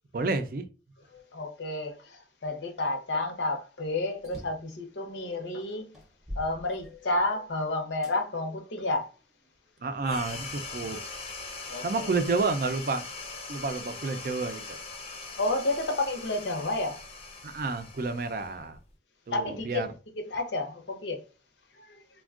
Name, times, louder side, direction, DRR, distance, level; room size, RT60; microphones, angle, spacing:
voice 1, 0.1-0.7 9.8-11.0 11.8-13.1 13.5-14.8 17.4-18.8 19.3-19.9, right 3 dB, 50° right, 0.4 m, -30 dB
voice 2, 1.1-5.9 6.4-9.1 11.7-12.1 15.4-17.0 19.3-19.8 20.2-21.2 21.7-22.0, left 2 dB, 80° left, 0.7 m, -31 dB
sound 1, 4.2-4.7 5.4-5.5 5.9-7.4 8.0-8.2 8.9-9.9, equal, ahead, 0.7 m, -43 dB
sound 2, 10.0-18.9, left 4 dB, 35° left, 0.5 m, -41 dB
3.4 x 2.2 x 2.4 m
head